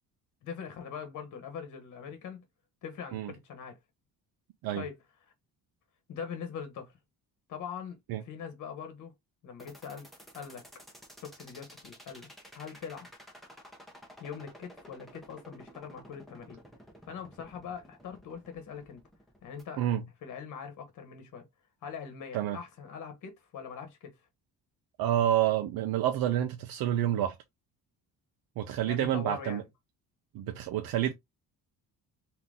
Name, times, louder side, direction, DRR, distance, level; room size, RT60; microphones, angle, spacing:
voice 1, 0.4-2.4 2.8-3.8 4.8-5.0 6.1-7.0 7.5-9.1 9.4-10.8 11.2-12.3 12.5-13.1 14.2-16.6 17.1-19.0 19.4-19.9 20.2-21.4 21.8-24.2 28.8-29.7, left 7 dB, 55° left, 1.2 m, -42 dB
sound 1, 9.6-19.6, equal, ahead, 0.8 m, -52 dB
voice 2, 25.0-27.3 28.6-29.6 30.3-31.1, right 11 dB, 80° right, 0.6 m, -28 dB
3.8 x 2.9 x 3.5 m
cardioid pair, 170°, 35 cm